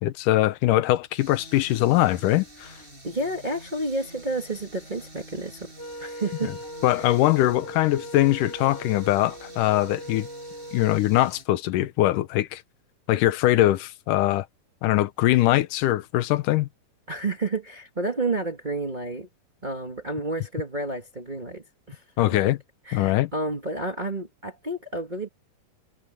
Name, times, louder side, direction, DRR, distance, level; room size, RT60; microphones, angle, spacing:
voice 1, 0.0-2.7 6.8-10.3 10.7-12.6 13.1-14.5 14.8-16.7 22.2-22.6 22.9-23.3, left 15 dB, 75° left, 2.1 m, -22 dB
sound 1, 1.2-11.4, right 1 dB, 15° right, 7.1 m, -48 dB
voice 2, 3.0-5.7 6.0-6.5 7.0-7.1 17.1-19.3 19.6-22.4 22.8-25.3, right 2 dB, 75° right, 0.4 m, -30 dB
Wind instrument woodwind instrument, 5.8-11.0, equal, 30° left, 2.7 m, -40 dB
omnidirectional pair, 4.3 m